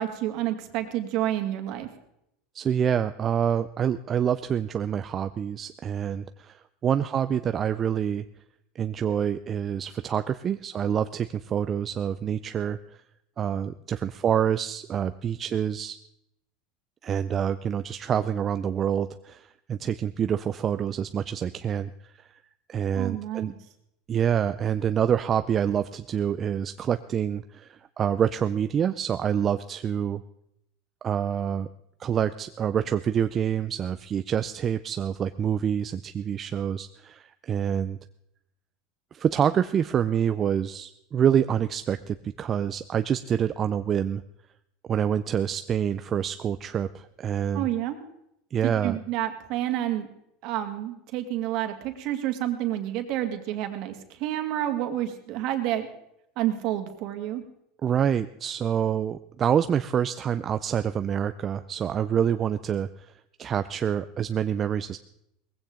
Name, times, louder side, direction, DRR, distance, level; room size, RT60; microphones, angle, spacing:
voice 1, 0.0-1.9 23.0-23.5 47.5-48.0 48.6-50.1 50.4-53.9 54.2-55.9 56.4-57.4, right 12 dB, 55° right, 6 dB, 2.2 m, -29 dB
voice 2, 2.5-8.2 8.8-12.8 13.4-16.0 17.0-22.3 22.7-23.5 24.1-30.2 31.0-31.7 32.0-38.0 39.1-44.2 44.9-47.7 48.5-49.0 57.8-62.9 63.4-65.0, right 8 dB, 30° right, 10 dB, 0.5 m, -27 dB
19.0 x 16.0 x 3.8 m, 0.78 s
supercardioid pair, 130°, 0 cm